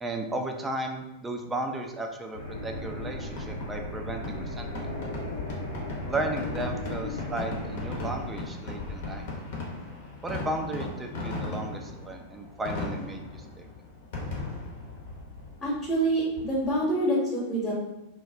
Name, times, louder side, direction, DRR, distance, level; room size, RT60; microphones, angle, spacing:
voice 1, 0.0-4.9 6.0-9.3 10.2-13.7, right 2 dB, 15° right, 3 dB, 0.3 m, -34 dB
sound 1, 2.3-8.2, left 2 dB, 90° left, 0.6 m, -36 dB
Fireworks, 3.4-16.9, left 2 dB, 55° left, 0.7 m, -38 dB
voice 2, 15.6-17.7, right 1 dB, 20° left, -7 dB, 0.8 m, -26 dB
2.3 x 2.1 x 3.5 m, 0.99 s
figure-of-eight pair, 90°, 0 cm